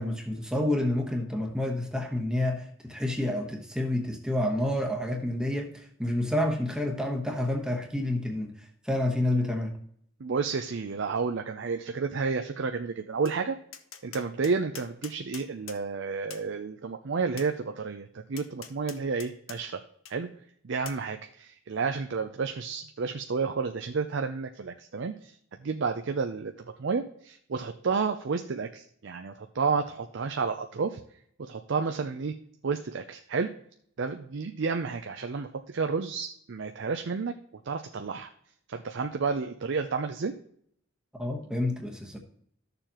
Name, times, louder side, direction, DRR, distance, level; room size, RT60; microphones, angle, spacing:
voice 1, 0.0-9.7 41.1-42.2, left 1 dB, 5° right, 2 dB, 1.1 m, -29 dB
voice 2, 10.2-13.6 14.0-19.8 20.1-20.3 20.6-25.3 25.6-26.5 26.8-31.0 31.4-32.3 32.6-33.5 34.0-37.3 37.7-38.3 38.7-40.3, right 5 dB, 65° right, 6 dB, 0.5 m, -31 dB
Tap, 13.2-13.4 13.7-15.8 16.3-16.5 17.4-17.5 18.4-19.6 20.0-20.1 20.8-21.0, left 9 dB, 80° left, 0.8 m, -44 dB
13.0 x 6.9 x 3.0 m, 0.66 s
head